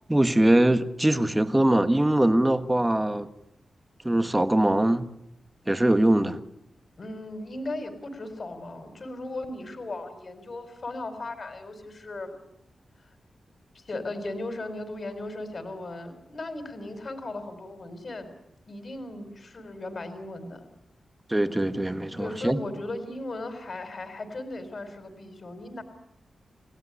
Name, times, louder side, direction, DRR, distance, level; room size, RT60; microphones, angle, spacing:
voice 1, 0.1-3.3 4.0-5.1 5.7-6.4 21.3-22.6, right 1 dB, 15° right, 1.6 m, -22 dB
voice 2, 7.0-12.3 13.7-18.3 18.6-20.7 22.2-25.8, left 2 dB, 45° left, 4.3 m, -37 dB
29.0 x 17.0 x 9.9 m
wide cardioid pair, 90°, 0 cm